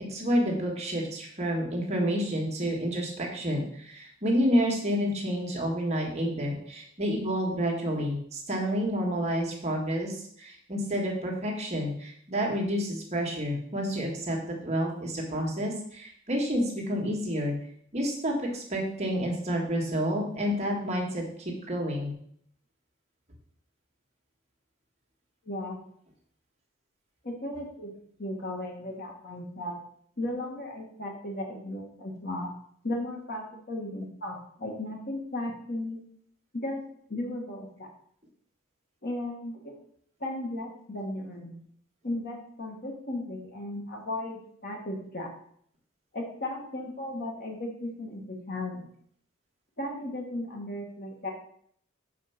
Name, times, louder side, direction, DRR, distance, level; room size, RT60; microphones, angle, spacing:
voice 1, 0.1-17.5 17.9-22.1, equal, 35° right, -1 dB, 1.6 m, -29 dB
voice 2, 25.4-25.8 27.2-27.9 28.2-29.8 30.2-32.5 32.8-36.0 36.5-36.8 37.1-37.9 39.0-39.7 40.2-41.5 42.0-45.3 46.1-48.9 49.8-51.3, left 1 dB, 50° left, 1 dB, 1.5 m, -35 dB
6.0 x 4.6 x 5.7 m, 0.64 s
head